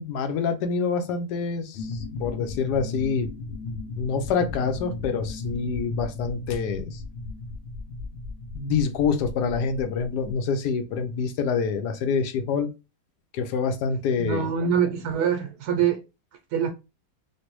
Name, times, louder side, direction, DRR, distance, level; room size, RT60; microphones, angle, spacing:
voice 1, 0.0-3.3 4.0-7.0 8.5-12.7 13.3-14.5, left 5 dB, 85° left, 1.2 m, -26 dB
sound 1, 1.7-10.3, left 3 dB, 60° left, 0.7 m, -36 dB
voice 2, 14.2-16.0 16.5-16.7, right 8 dB, 80° right, 1.1 m, -24 dB
3.3 x 2.5 x 2.9 m
omnidirectional pair, 1.7 m